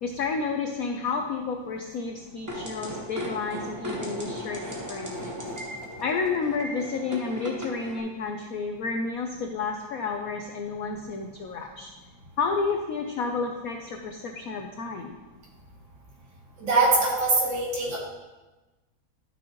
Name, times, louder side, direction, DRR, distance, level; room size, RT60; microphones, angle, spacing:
voice 1, 0.0-5.4 6.0-11.9 12.4-15.1, left 4 dB, 75° left, 3 dB, 0.8 m, -31 dB
sound 1, 2.5-8.0, equal, 15° right, 0.7 m, -36 dB
voice 2, 16.6-18.0, right 3 dB, 65° right, -3 dB, 2.4 m, -23 dB
12.5 x 6.1 x 3.0 m, 1.1 s
omnidirectional pair, 2.2 m